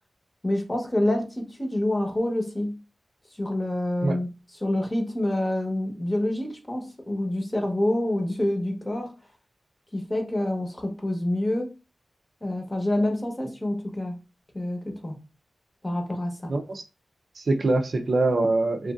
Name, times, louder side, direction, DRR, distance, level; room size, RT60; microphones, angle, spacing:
voice 1, 0.4-2.8 3.4-9.1 9.9-11.7 12.4-14.2 14.5-15.2 15.8-16.5, left 1 dB, 25° left, 0.9 m, -27 dB
voice 2, 16.5-16.8 17.4-18.9, right 2 dB, 65° right, 0.4 m, -24 dB
3.1 x 2.5 x 2.3 m
cardioid pair, 60°, 0 cm